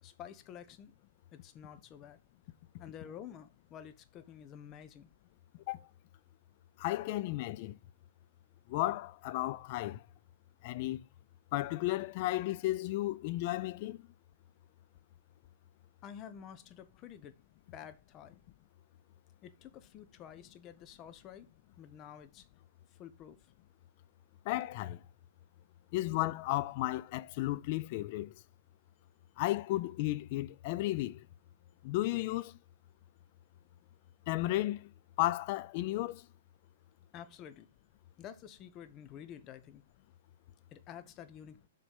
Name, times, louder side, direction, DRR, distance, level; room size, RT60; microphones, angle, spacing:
voice 1, 0.0-0.9 1.3-2.2 2.8-5.1 5.7-5.9 16.0-17.4 17.7-18.4 19.4-21.5 21.8-22.5 22.9-23.5 37.1-37.7 38.2-39.8 40.7-41.6, left 9 dB, 30° left, 1.1 m, -50 dB
voice 2, 6.8-7.8 8.7-10.0 10.6-11.0 11.5-14.0 24.5-25.0 25.9-28.3 29.4-31.2 31.8-32.5 34.3-34.9 35.2-36.2, left 17 dB, 45° left, 0.5 m, -33 dB
7.2 x 4.2 x 5.3 m
hypercardioid pair, 125°, 0 cm